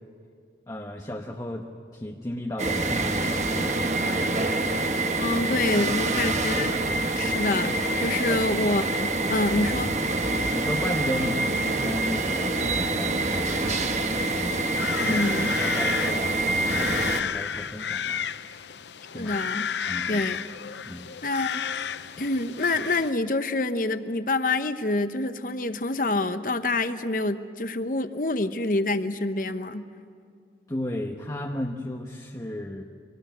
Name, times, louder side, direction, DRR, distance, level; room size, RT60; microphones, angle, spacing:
voice 1, 0.7-4.8 5.3-5.4 5.8-5.9 6.2-6.4 8.0-8.4 10.5-14.7 15.0-18.2 19.1-19.3 19.9-20.2 20.8-21.1 30.7-32.8, left 1 dB, 20° left, 1 dB, 1.0 m, -35 dB
sound 1, 2.6-17.2, right 2 dB, 40° right, 1.1 m, -26 dB
voice 2, 5.2-6.7 7.1-9.9 15.0-15.6 19.1-19.7 20.1-20.4 21.2-21.6 22.2-29.9, left 2 dB, 50° left, 10 dB, 0.9 m, -27 dB
sound 2, 13.3-23.1, left 7 dB, 85° left, 0.6 m, -33 dB
25.0 x 18.5 x 9.3 m, 2.3 s
head